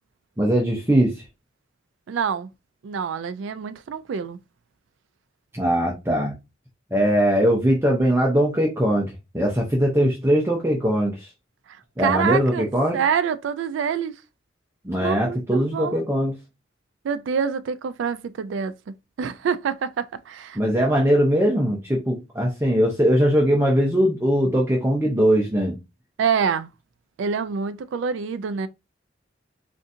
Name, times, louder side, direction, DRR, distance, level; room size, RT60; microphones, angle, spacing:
voice 1, 0.4-1.2 5.5-6.3 6.9-11.3 12.0-13.0 14.8-16.3 20.6-25.8, equal, 15° right, 0.6 m, -21 dB
voice 2, 2.1-2.5 2.8-4.4 11.7-12.7 12.9-14.1 15.0-16.0 17.0-18.7 19.2-20.6 26.2-26.7 27.2-28.7, right 6 dB, 75° right, 0.3 m, -26 dB
3.7 x 2.6 x 2.6 m
head